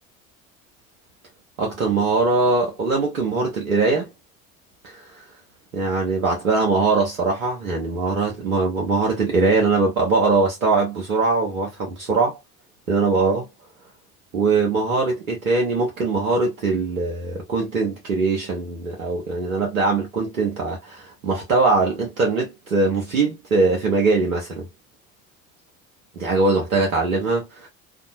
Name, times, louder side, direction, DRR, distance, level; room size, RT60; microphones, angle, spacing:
voice 1, 1.6-4.1 4.8-5.0 5.7-12.4 12.9-13.5 14.3-24.7 26.2-27.7, right 3 dB, 85° right, 0.8 m, -21 dB
2.6 x 2.2 x 2.5 m
figure-of-eight pair, 55°, 41 cm